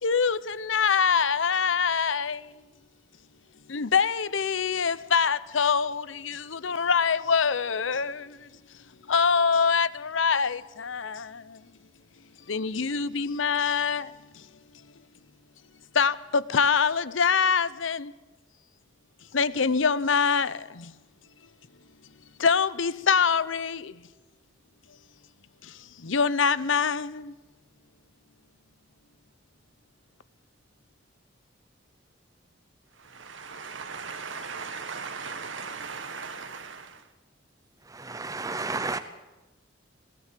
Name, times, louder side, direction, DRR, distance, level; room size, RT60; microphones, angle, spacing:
voice 1, 0.0-2.5 3.7-8.5 9.1-11.6 12.5-14.5 15.9-18.1 19.3-20.9 22.4-24.0 25.6-27.3, left 6 dB, 80° left, 0.8 m, -25 dB
voice 2, 33.0-37.0, right 5 dB, 75° right, 1.4 m, -38 dB
voice 3, 37.9-39.0, right 3 dB, 20° right, 0.6 m, -32 dB
20.5 x 17.0 x 7.5 m
head